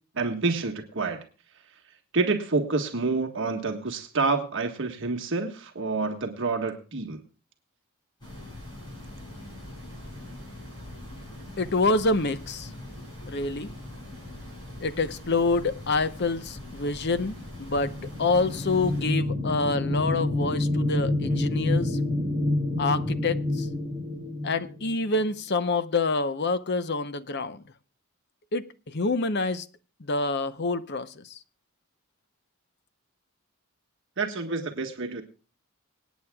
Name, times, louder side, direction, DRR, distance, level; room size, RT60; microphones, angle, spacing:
voice 1, 0.1-1.2 2.1-7.2 34.2-35.2, right 3 dB, 55° right, 1.6 m, -28 dB
sound 1, 8.2-19.0, left 1 dB, 20° left, 7.3 m, -42 dB
voice 2, 11.6-12.7 13.2-13.7 14.8-17.9 18.2-22.0 22.8-23.7 24.4-27.6 28.5-29.7 30.0-31.4, left 3 dB, 50° left, 0.8 m, -27 dB
sound 2, 17.5-25.2, left 1 dB, 5° right, 2.8 m, -28 dB
26.0 x 9.4 x 2.3 m
head